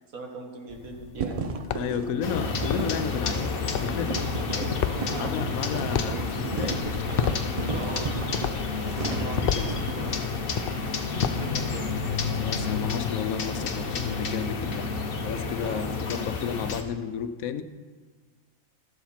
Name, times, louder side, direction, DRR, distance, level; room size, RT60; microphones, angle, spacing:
voice 1, 0.1-1.5 4.5-5.5 6.1-6.2 6.7-6.8 7.7-8.1 9.1-10.5 11.2-12.0 15.6-16.1, right 3 dB, 85° right, 2 dB, 1.9 m, -40 dB
sound 1, 0.7-12.5, left 8 dB, 65° left, 0.5 m, -35 dB
sound 2, 1.2-10.1, right 4 dB, 55° right, 0.4 m, -35 dB
voice 2, 1.7-4.2 5.2-7.0 9.2-9.7 12.4-14.9 15.2-17.6, left 7 dB, 90° left, 10 dB, 1.1 m, -33 dB
sound 3, 2.2-16.8, left 4 dB, 50° left, 0.9 m, -30 dB
13.0 x 7.2 x 5.7 m, 1.5 s
omnidirectional pair, 1.4 m